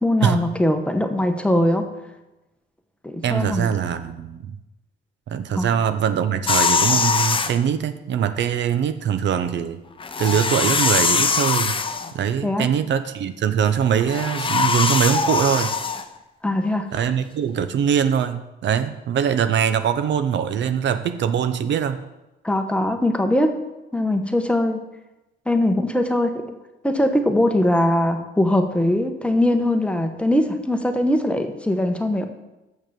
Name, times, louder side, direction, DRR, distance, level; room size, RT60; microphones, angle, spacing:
voice 1, 0.0-1.9 3.0-3.7 5.5-5.8 12.4-12.7 16.4-17.1 22.4-23.6 23.9-24.8 25.5-26.4 26.8-32.3, left 1 dB, 5° left, 5 dB, 1.0 m, -21 dB
voice 2, 3.2-4.6 5.3-9.8 10.2-11.8 12.1-15.7 16.9-22.0, right 8 dB, 65° right, 11 dB, 0.6 m, -22 dB
sound 1, 6.5-7.6 10.0-12.1 14.0-16.0, left 5 dB, 25° left, 0.7 m, -21 dB
7.2 x 6.3 x 6.7 m, 1.0 s
cardioid pair, 90°, 20 cm